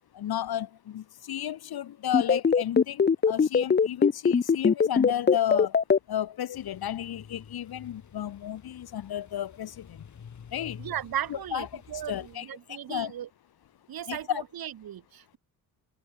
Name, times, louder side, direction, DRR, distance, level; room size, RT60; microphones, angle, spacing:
voice 1, 0.1-5.8 6.1-10.0 10.5-10.8 11.3-11.8 12.1-13.1 14.1-14.4, left 11 dB, 70° left, 1.7 m, -33 dB
sound 1, 2.1-6.0, left 6 dB, 25° left, 0.8 m, -20 dB
sound 2, 6.5-12.4, left 7 dB, 45° left, 5.5 m, -49 dB
voice 2, 10.8-13.3 13.9-15.4, right 10 dB, 65° right, 1.8 m, -36 dB
wide cardioid pair, 135°, 39 cm